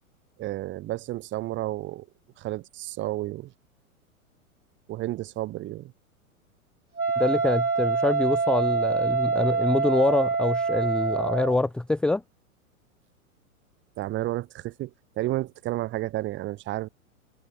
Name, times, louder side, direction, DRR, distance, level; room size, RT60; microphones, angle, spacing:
voice 1, 0.4-2.1 2.4-3.5 4.9-5.9 14.0-16.9, right 16 dB, 25° right, 1.5 m, -31 dB
Wind instrument woodwind instrument, 7.0-11.7, right 4 dB, 85° right, 1.4 m, -25 dB
voice 2, 7.2-12.2, left 2 dB, ahead, 0.6 m, -25 dB
figure-of-eight pair, 100°, 43 cm